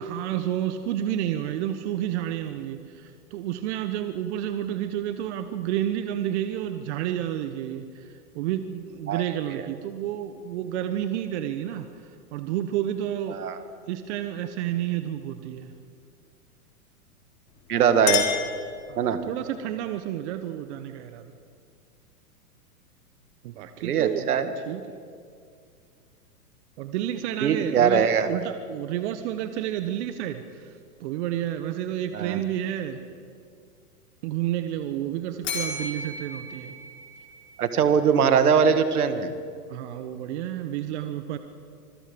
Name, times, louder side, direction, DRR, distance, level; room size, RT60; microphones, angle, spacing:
voice 1, 0.0-11.9 12.3-13.5 13.9-15.7 18.9-21.3 23.4-24.2 24.7-25.1 26.8-30.7 31.0-33.0 34.2-36.7 39.7-41.4, right 11 dB, 45° right, 9 dB, 1.3 m, -30 dB
Chink clink, 17.5-19.4, left 10 dB, 50° left, 3.7 m, -30 dB
voice 2, 17.7-18.3 19.0-19.2 23.8-24.5 27.4-28.3 32.1-32.4 37.6-39.3, right 7 dB, 70° right, 10 dB, 2.0 m, -21 dB
Bell, 35.4-37.7, left 2 dB, 25° left, 4.8 m, -35 dB
26.0 x 22.5 x 5.3 m, 2.2 s
hypercardioid pair, 120°, 46 cm